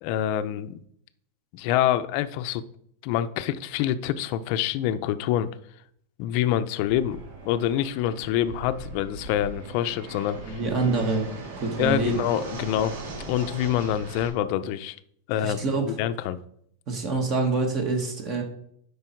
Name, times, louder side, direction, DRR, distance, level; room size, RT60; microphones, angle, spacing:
voice 1, 0.0-0.7 1.5-2.6 3.0-5.5 6.2-7.2 7.4-10.6 11.8-15.0 15.3-16.4, left 11 dB, 45° left, 11 dB, 0.6 m, -26 dB
Fixed-wing aircraft airplane, 6.9-14.3, right 3 dB, 70° right, 2.6 m, -39 dB
voice 2, 10.5-11.3 11.5-12.2 15.4-16.0 16.9-18.4, right 3 dB, 35° right, 4 dB, 1.7 m, -26 dB
11.5 x 5.4 x 4.5 m, 0.69 s
supercardioid pair, 155°, 0 cm